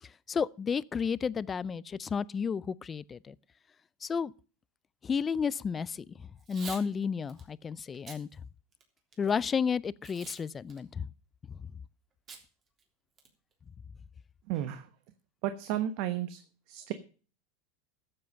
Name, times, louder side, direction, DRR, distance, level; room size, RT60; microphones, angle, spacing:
voice 1, 0.0-3.3 4.0-4.3 5.0-8.3 9.2-11.1, left 6 dB, 20° left, 0.5 m, -32 dB
Packing tape duct tape / Tearing, 6.4-6.8 7.3-7.4 7.9-8.2 8.7-9.3 10.0-10.4 10.7-10.8 12.3-12.4 12.8-12.9 13.2-13.5, right 5 dB, 30° right, 3.4 m, -46 dB
voice 2, 14.5-14.8 15.4-16.4 16.7-16.9, right 11 dB, 60° right, 1.1 m, -32 dB
13.0 x 7.8 x 6.6 m
supercardioid pair, 130°, 0 cm